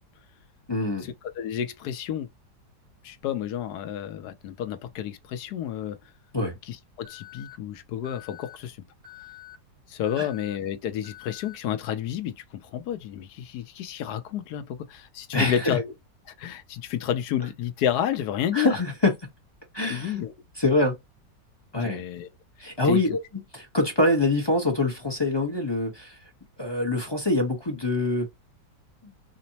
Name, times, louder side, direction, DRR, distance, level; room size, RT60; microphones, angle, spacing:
voice 1, 0.7-1.1 6.3-6.5 10.2-10.3 15.3-15.8 18.5-19.1 19.7-20.1 20.6-20.9 21.7-22.0 22.6-23.1 23.5-26.2 26.6-28.3, left 2 dB, 20° left, 0.7 m, -24 dB
voice 2, 1.4-2.3 3.0-6.0 6.6-8.8 9.9-15.9 16.4-18.8 19.9-20.3 21.8-22.3 22.8-23.2, left 10 dB, 70° left, 1.1 m, -30 dB
Alarm, 7.0-7.5 8.0-8.5 9.0-9.5 10.0-10.5 11.0-11.5, left 15 dB, 85° right, 2.5 m, -46 dB
5.1 x 2.0 x 2.7 m
omnidirectional pair, 1.9 m